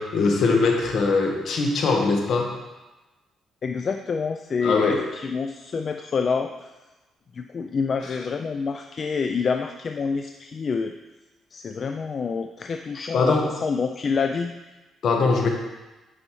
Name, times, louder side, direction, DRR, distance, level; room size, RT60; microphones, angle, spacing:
voice 1, 0.0-2.5 4.6-5.0 8.0-8.1 13.1-13.4 15.0-15.5, left 4 dB, 65° left, 2 dB, 1.2 m, -21 dB
voice 2, 3.6-6.7 7.3-10.9 11.5-14.5, left 5 dB, 45° left, 6 dB, 0.3 m, -27 dB
8.7 x 5.5 x 3.1 m, 1.1 s
cardioid pair, 90°, 0 cm